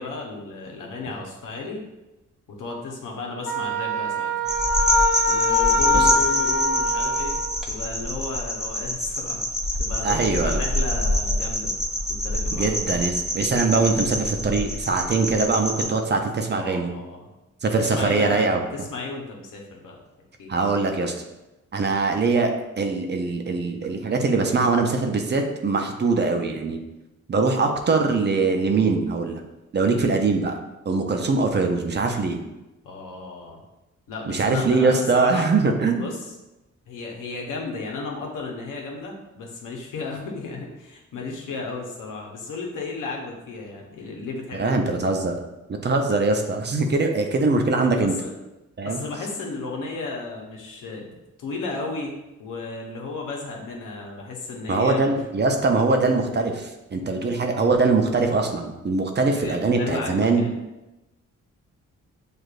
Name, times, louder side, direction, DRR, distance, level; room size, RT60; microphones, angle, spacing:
voice 1, 0.0-1.8 2.6-4.5 5.3-7.3 7.7-9.4 9.8-11.8 12.1-13.0 16.5-17.3 17.8-20.0 20.4-20.6 29.8-30.1 32.8-33.6 34.1-35.5 36.0-36.3 36.9-45.2 48.0-48.3 48.8-55.2 59.3-60.6, left 3 dB, 85° left, 0 dB, 0.9 m, -34 dB
Wind instrument woodwind instrument, 3.4-7.6, left 2 dB, 35° left, 0.9 m, -23 dB
sound 1, 4.5-15.9, equal, ahead, 0.7 m, -26 dB
voice 2, 10.0-10.6 12.5-16.9 17.6-18.6 20.5-21.1 21.7-26.8 27.3-29.4 29.7-30.6 30.9-32.4 34.3-36.1 44.5-45.4 45.7-48.1 48.8-49.0 54.7-60.4, right 3 dB, 35° right, 4 dB, 0.5 m, -22 dB
6.4 x 2.5 x 2.4 m, 0.99 s
cardioid pair, 80°, 31 cm